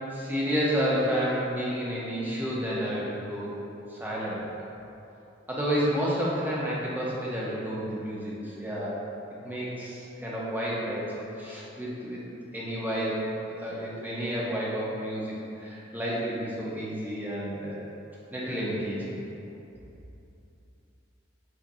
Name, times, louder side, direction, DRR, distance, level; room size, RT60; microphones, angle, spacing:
voice 1, 0.1-3.5 3.9-4.4 5.5-9.0 9.4-12.2 12.5-13.2 13.6-15.3 15.6-17.8 18.3-19.2, equal, 10° right, -7 dB, 0.5 m, -30 dB
5.9 x 2.1 x 2.7 m, 2.8 s
head